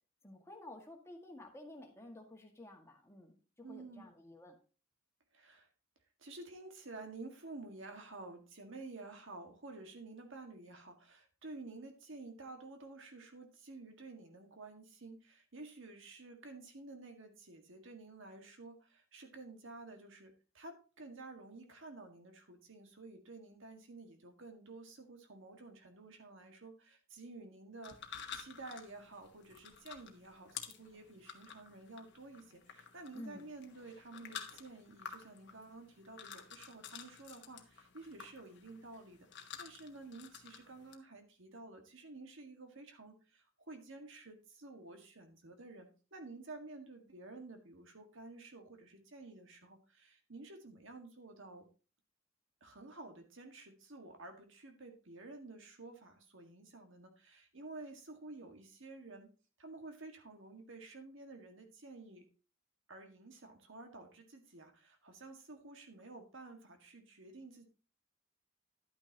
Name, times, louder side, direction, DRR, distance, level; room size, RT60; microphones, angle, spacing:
voice 1, 0.2-4.6 33.1-33.4, left 1 dB, 15° left, 1 dB, 1.9 m, -52 dB
voice 2, 3.6-4.0 5.3-5.7 6.2-51.7 52.6-59.3 59.6-62.3 62.9-67.6, right 3 dB, 65° right, 4 dB, 1.8 m, -51 dB
sound 1, 27.8-40.9, left 7 dB, 55° left, 1.2 m, -51 dB
11.5 x 8.8 x 2.9 m, 0.35 s
head